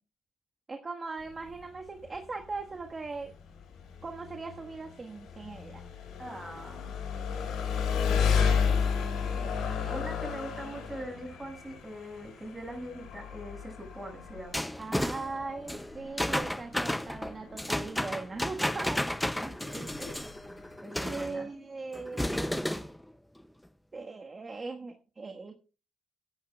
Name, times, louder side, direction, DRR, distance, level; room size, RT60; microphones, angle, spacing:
voice 1, 0.7-3.3 4.0-5.8 9.4-10.3 14.8-19.0 21.0-22.7 23.9-25.6, right 3 dB, 30° right, 3 dB, 1.5 m, -39 dB
Engine, 1.2-20.8, left 6 dB, 80° left, 4.9 m, -33 dB
voice 2, 6.2-7.0 7.9-8.6 9.9-14.7 19.1-20.2 20.8-21.5, right 1 dB, 15° right, 4 dB, 6.3 m, -42 dB
sound 1, 14.5-21.3 21.9-23.0, left 1 dB, 5° left, 0.5 m, -33 dB
23.0 x 10.5 x 2.4 m, 0.34 s
cardioid pair, 90°, 0 cm